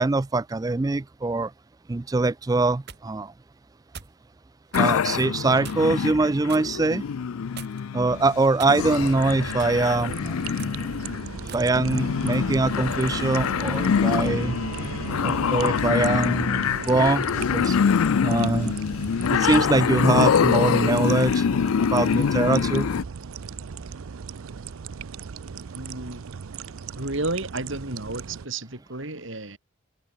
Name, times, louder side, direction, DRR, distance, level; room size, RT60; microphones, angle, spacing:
voice 1, 0.0-1.5 1.9-3.3 4.8-7.0 7.9-10.4 11.5-14.6 15.2-17.8 18.2-18.8 19.3-21.4 21.8-22.9, right 3 dB, 15° right, 0.3 m, -23 dB
sound 1, 2.5-3.1 3.9-4.2 4.7-4.9 5.6-6.0 6.5-6.7 7.6-8.0 8.6-9.1 9.6-9.8 10.5-10.8 11.5-11.7 12.3-12.5, right 6 dB, 50° right, 1.9 m, -42 dB
sound 2, 4.7-23.0, left 7 dB, 90° left, 0.4 m, -25 dB
sound 3, 8.8-28.5, right 6 dB, 80° right, 0.5 m, -37 dB
voice 2, 25.7-26.2 27.0-29.6, right 2 dB, 65° right, 3.7 m, -32 dB
head